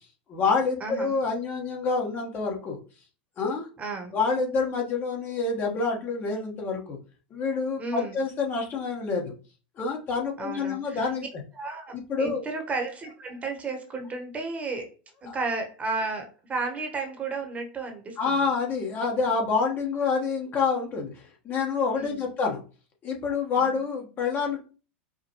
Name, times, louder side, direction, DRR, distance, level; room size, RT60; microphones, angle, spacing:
voice 1, 0.3-2.8 3.4-3.7 4.1-7.0 7.3-9.3 9.8-11.2 11.9-12.4 15.3-15.4 18.2-22.6 23.0-24.6, left 4 dB, 35° left, 0 dB, 1.1 m, -27 dB
voice 2, 0.8-1.2 3.8-4.2 7.8-8.2 10.4-11.1 11.5-14.9 15.2-18.4 22.0-22.3 23.5-23.7, right 3 dB, 25° right, 3 dB, 1.0 m, -33 dB
4.9 x 2.2 x 2.9 m, 0.35 s
hypercardioid pair, 100°, 6 cm